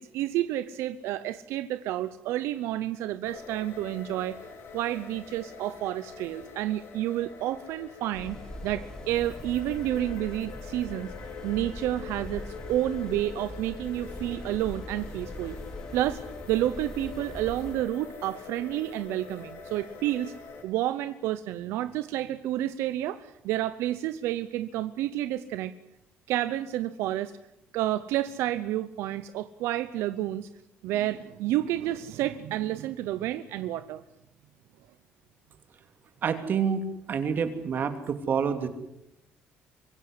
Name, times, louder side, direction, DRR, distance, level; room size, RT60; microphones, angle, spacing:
voice 1, 0.0-4.4 4.7-8.4 8.6-11.1 11.4-15.6 15.9-16.2 16.5-20.3 20.6-25.7 26.3-27.3 27.7-30.5 30.8-34.0, right 13 dB, 90° right, 13 dB, 0.9 m, -30 dB
sound 1, 3.2-20.6, left 5 dB, 70° left, 5.2 m, -44 dB
sound 2, 8.1-17.7, left 1 dB, 15° left, 5.3 m, -42 dB
voice 2, 36.2-38.7, right 6 dB, 50° right, 9 dB, 3.0 m, -28 dB
25.0 x 16.5 x 9.8 m, 0.84 s
cardioid pair, 110°, 4 cm